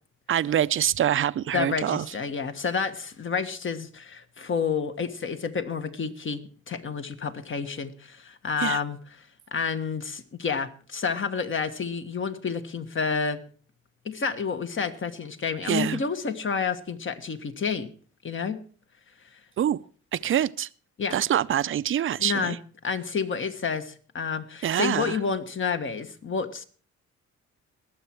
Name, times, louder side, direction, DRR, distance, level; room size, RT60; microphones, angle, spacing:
voice 1, 0.3-2.1 8.6-8.8 15.6-16.0 19.6-19.8 20.1-20.7 21.1-22.6 24.6-25.2, right 10 dB, 45° right, 0.5 m, -25 dB
voice 2, 1.5-9.0 9.5-13.4 14.0-17.9 18.2-18.6 19.3-19.4 21.0-21.2 22.2-22.6 22.8-26.6, left 5 dB, 40° left, 1.4 m, -29 dB
20.5 x 7.4 x 4.6 m
cardioid pair, 90°, 30 cm